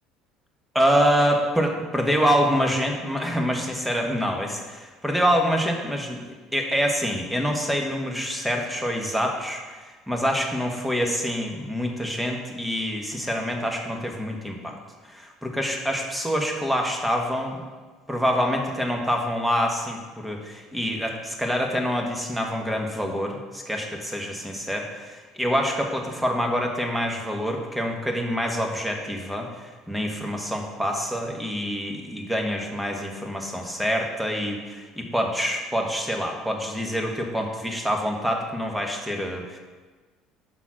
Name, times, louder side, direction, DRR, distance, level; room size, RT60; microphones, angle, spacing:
voice 1, 0.7-14.7 15.1-17.6 18.1-39.6, equal, 5° right, 2 dB, 1.2 m, -26 dB
6.0 x 3.9 x 6.1 m, 1.4 s
supercardioid pair, 80°, 0 cm